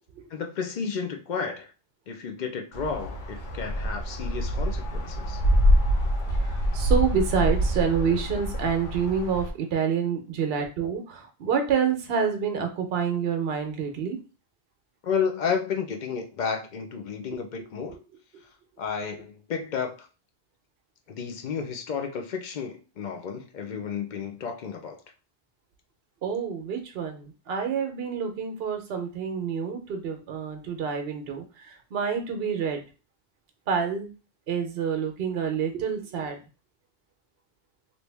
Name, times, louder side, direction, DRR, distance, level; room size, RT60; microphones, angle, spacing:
voice 1, 0.3-1.7 2.1-5.4 15.0-18.0 18.8-20.1 21.1-25.0, left 6 dB, 55° left, 0.6 m, -32 dB
sound 1, 2.7-9.5, equal, 90° left, 1.1 m, -25 dB
voice 2, 6.3-14.2 18.3-18.4 26.2-32.8 33.7-34.1 34.5-36.4, right 6 dB, 60° right, 0.9 m, -28 dB
3.0 x 2.6 x 3.3 m
omnidirectional pair, 1.2 m